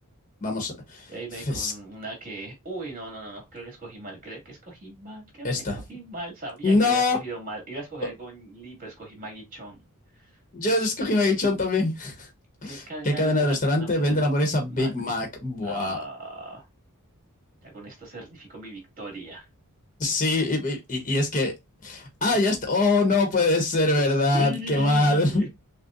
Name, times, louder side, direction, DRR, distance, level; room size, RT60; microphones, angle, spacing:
voice 1, 0.4-1.1 1.5-1.7 5.4-5.8 6.6-7.2 10.5-12.3 12.6-16.0 20.0-21.5 21.8-25.4, left 2 dB, 35° left, 1.0 m, -23 dB
voice 2, 1.1-5.5 5.9-9.8 10.2-10.3 12.6-14.9 15.6-16.7 17.6-19.5 23.9-25.5, right 2 dB, 40° right, 2.4 m, -38 dB
6.4 x 2.2 x 2.5 m
head